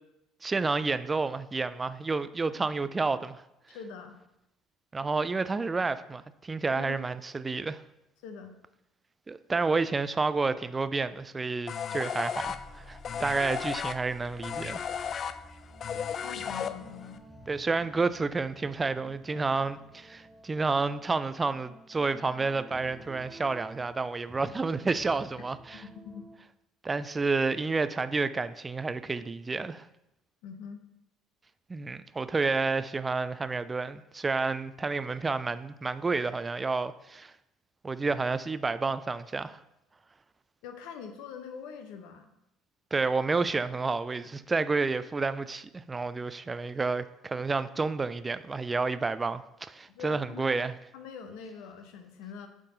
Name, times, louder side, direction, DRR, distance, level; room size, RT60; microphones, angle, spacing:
voice 1, 0.4-3.4 4.9-7.8 9.3-14.9 17.5-25.8 26.8-29.9 31.7-37.3 37.8-39.6 42.9-50.7, right 4 dB, 25° right, 0.3 m, -30 dB
voice 2, 3.7-4.2 6.7-7.1 8.2-8.5 16.2-17.2 25.8-26.3 30.4-30.8 40.6-42.3 49.9-50.6 50.9-52.5, left 6 dB, 70° left, 0.7 m, -43 dB
sound 1, 11.2-11.6 12.2-26.4, right 1 dB, 5° right, 0.9 m, -52 dB
sound 2, 11.7-17.2, left 7 dB, 45° left, 0.4 m, -35 dB
8.3 x 3.7 x 3.9 m
hypercardioid pair, 65°, 0 cm